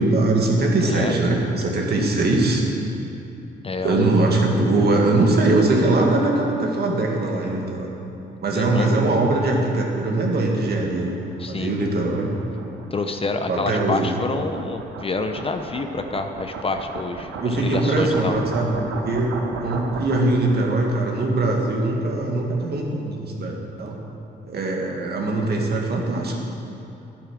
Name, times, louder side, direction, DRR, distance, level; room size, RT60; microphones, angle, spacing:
voice 1, 0.0-2.6 3.8-7.9 8.4-11.2 11.5-12.3 13.5-14.2 17.4-23.9 24.4-26.4, right 2 dB, 55° right, 0 dB, 2.1 m, -21 dB
voice 2, 0.8-1.2 3.6-4.3 8.5-8.9 11.4-11.8 12.9-18.3, left 3 dB, 30° left, 6 dB, 0.7 m, -28 dB
sound 1, 10.6-20.6, right 4 dB, 85° right, 1.0 m, -36 dB
11.0 x 8.6 x 6.3 m, 2.9 s
cardioid pair, 90°, 20 cm